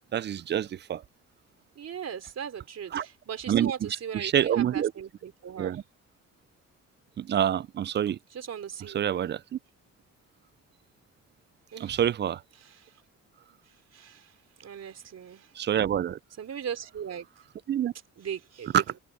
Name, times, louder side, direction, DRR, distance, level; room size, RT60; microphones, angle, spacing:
voice 1, 0.1-1.0 2.9-3.0 3.5-3.7 4.2-4.9 5.6-5.8 7.2-8.2 8.9-9.4 11.8-12.4 15.6-16.2 17.7-17.9, right 10 dB, 35° right, 0.4 m, -26 dB
voice 2, 1.8-5.8 8.3-9.0 11.7-12.1 12.6-13.0 13.7-15.5 16.4-17.3 18.2-18.8, right 8 dB, 55° right, 3.8 m, -39 dB
open air
cardioid pair, 90°, 30 cm